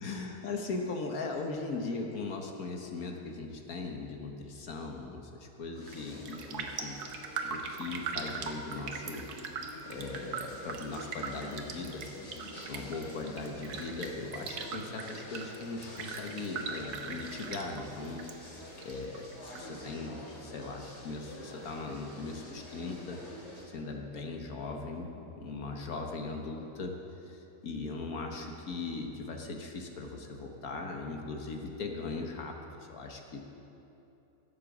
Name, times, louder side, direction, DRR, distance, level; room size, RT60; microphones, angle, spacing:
voice 1, 0.0-9.3 9.9-12.1 12.7-18.3 18.8-23.2 23.7-26.9 27.2-33.5, left 3 dB, 60° left, 2 dB, 1.5 m, -39 dB
sound 1, 5.7-23.6, left 1 dB, 80° left, 2.9 m, -48 dB
Raindrop, 5.8-6.0 6.3-18.3 18.6-19.6 20.0-20.1, right 5 dB, 70° right, 1.4 m, -40 dB
14.5 x 7.7 x 7.1 m, 2.9 s
omnidirectional pair, 1.8 m